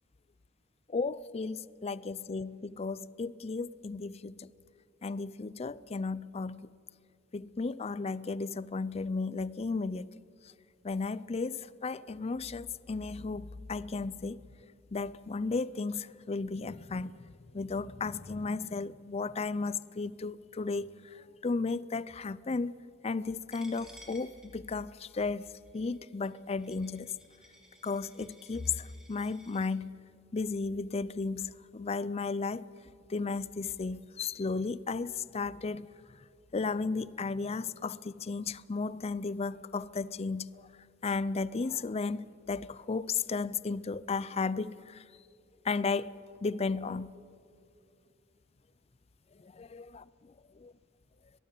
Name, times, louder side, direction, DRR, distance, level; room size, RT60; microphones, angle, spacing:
voice 1, 0.9-4.5 5.0-6.7 7.3-10.1 10.8-14.4 14.9-17.3 17.5-22.7 23.0-25.5 25.7-27.1 27.8-29.9 30.3-32.6 33.1-35.9 36.5-40.7 41.0-45.0 45.6-46.1 46.4-47.1 49.4-50.7, left 4 dB, 30° left, 19 dB, 0.4 m, -34 dB
Coin (dropping), 23.5-29.7, equal, 5° right, 2.9 m, -57 dB
23.0 x 19.5 x 8.4 m, 2.4 s
head